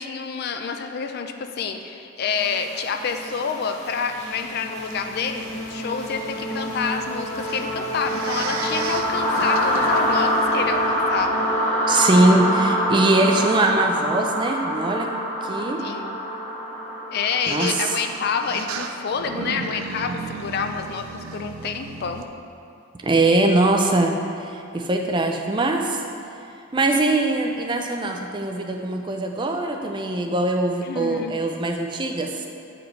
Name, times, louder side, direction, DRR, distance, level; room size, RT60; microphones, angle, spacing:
voice 1, 0.0-11.4 12.2-12.3 15.8-16.2 17.1-22.2 30.8-31.3, left 5 dB, 50° left, 6 dB, 0.4 m, -28 dB
sound 1, 2.4-20.2, equal, 35° left, 1.3 m, -26 dB
sound 2, 3.3-3.5 4.8-5.0 7.3-10.4 11.2-11.3 14.0-14.1 17.4-22.3, right 5 dB, 85° right, 0.4 m, -35 dB
voice 2, 11.9-15.1 15.4-15.8 17.5-17.9 23.0-26.0 26.7-32.5, right 2 dB, 25° right, 3 dB, 0.4 m, -21 dB
8.7 x 5.0 x 3.1 m, 2.6 s
head